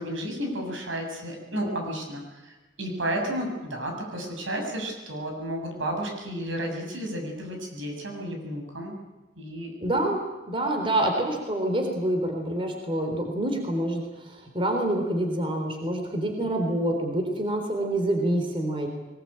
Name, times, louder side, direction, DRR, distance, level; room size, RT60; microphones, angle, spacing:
voice 1, 0.0-2.5 2.8-8.9 9.4-9.7, right 1 dB, 85° right, 2 dB, 7.3 m, -32 dB
voice 2, 9.8-18.9, right 1 dB, 25° right, 3 dB, 3.8 m, -27 dB
22.0 x 21.0 x 8.9 m, 1.1 s
head